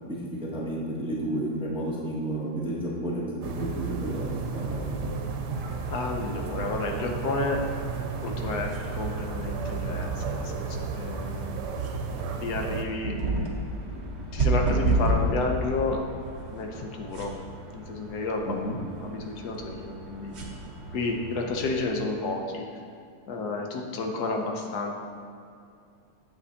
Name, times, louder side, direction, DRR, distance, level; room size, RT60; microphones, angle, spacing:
voice 1, 0.1-3.2 3.6-4.3 4.5-4.9 18.5-18.8, right 1 dB, 5° right, -4 dB, 0.7 m, -31 dB
sound 1, 3.4-12.8, right 5 dB, 85° right, 1.3 m, -33 dB
voice 2, 5.9-7.6 8.2-11.7 12.3-13.1 13.6-16.0 16.4-17.3 17.7-18.6 19.0-20.3 20.9-22.7 23.3-25.0, left 3 dB, 75° left, 2 dB, 1.3 m, -31 dB
sound 2, 8.2-21.9, right 2 dB, 50° right, 1.0 m, -32 dB
8.0 x 7.8 x 2.8 m, 2.4 s
omnidirectional pair, 1.8 m